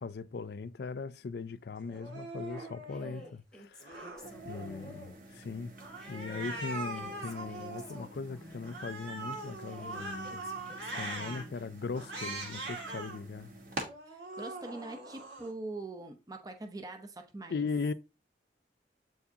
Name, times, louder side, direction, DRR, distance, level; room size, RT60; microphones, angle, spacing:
voice 1, 0.0-5.8 6.1-10.4 11.0-13.5 17.5-17.9, left 4 dB, 60° left, 0.4 m, -39 dB
Cat, 1.9-3.3 3.8-5.2 5.8-8.1 8.6-11.4 11.9-13.2 13.7-15.5, right 2 dB, 80° right, 2.1 m, -42 dB
Female speech woman speaking, 2.9-5.0 5.9-8.8 9.7-11.6, left 1 dB, 5° left, 1.1 m, -53 dB
sound 1, 4.2-13.9, right 2 dB, 50° right, 1.4 m, -48 dB
voice 2, 14.1-17.7, right 2 dB, 20° right, 0.7 m, -43 dB
8.0 x 4.6 x 2.8 m
head